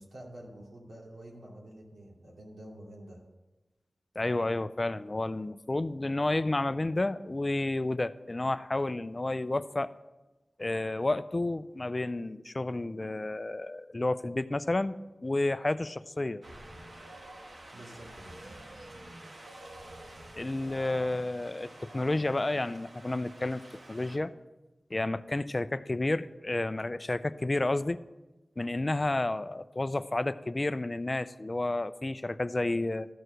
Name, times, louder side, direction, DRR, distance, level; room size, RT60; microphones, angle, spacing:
voice 1, 0.0-3.2 17.7-18.4, right 1 dB, 80° right, -2 dB, 2.6 m, -48 dB
voice 2, 4.2-9.9 10.6-15.0 15.2-16.4 20.3-23.6 23.9-24.3 24.9-28.0 28.6-33.1, left 2 dB, 35° left, 14 dB, 0.4 m, -31 dB
Wind, 16.4-24.2, right 1 dB, 60° right, 1.3 m, -48 dB
13.5 x 4.7 x 6.3 m, 1.1 s
wide cardioid pair, 70°, 0 cm